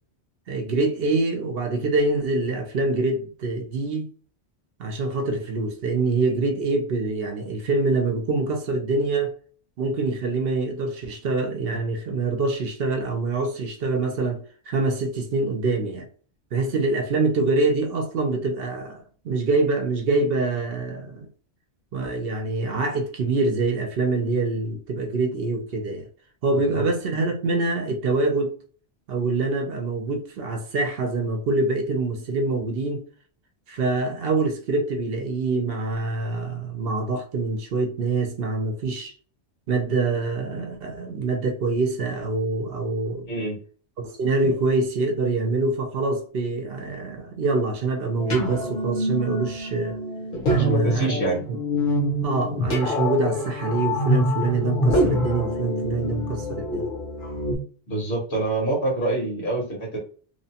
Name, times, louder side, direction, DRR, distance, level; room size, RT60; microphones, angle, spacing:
voice 1, 0.5-4.1 4.8-9.3 9.8-16.1 16.5-21.3 21.9-26.1 26.4-28.5 29.1-33.0 33.7-39.1 39.7-43.3 44.0-50.0 50.5-51.2 51.5-51.6 52.2-56.9, right 3 dB, 65° right, 0.8 m, -25 dB
voice 2, 26.5-26.8 43.3-43.6 44.4-44.5 50.5-51.4 57.9-60.0, right 2 dB, 70° left, 1.6 m, -26 dB
sound 1, 48.2-57.5, left 1 dB, 50° left, 0.9 m, -25 dB
3.0 x 2.1 x 2.8 m
omnidirectional pair, 1.1 m